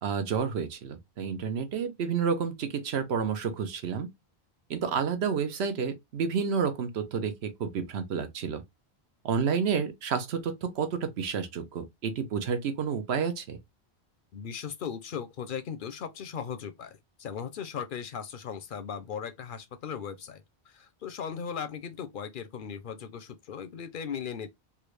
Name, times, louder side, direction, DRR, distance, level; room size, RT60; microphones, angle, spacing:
voice 1, 0.0-4.1 4.7-8.6 9.2-13.6, right 6 dB, 80° right, 1.0 m, -30 dB
voice 2, 14.3-24.5, left 7 dB, 60° left, 0.6 m, -38 dB
3.4 x 2.5 x 3.1 m
omnidirectional pair, 1.1 m